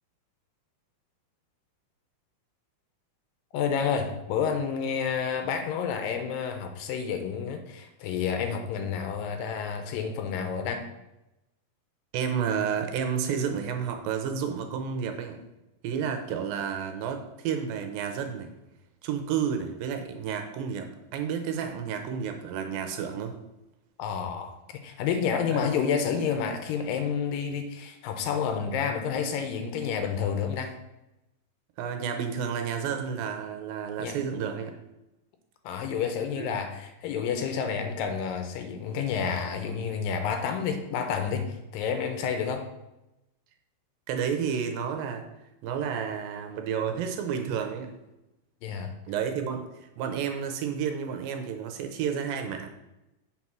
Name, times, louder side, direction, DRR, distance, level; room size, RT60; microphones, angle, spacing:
voice 1, 3.5-10.8 24.0-30.7 34.0-34.2 35.6-42.6 48.6-48.9, left 6 dB, 80° left, 7 dB, 2.3 m, -29 dB
voice 2, 12.1-15.4 15.8-18.5 19.0-23.4 25.5-25.7 31.8-34.7 36.4-36.6 44.1-45.3 45.6-47.9 49.1-52.7, right 7 dB, 75° right, 6 dB, 2.4 m, -31 dB
7.6 x 4.3 x 6.0 m, 0.94 s
omnidirectional pair, 4.3 m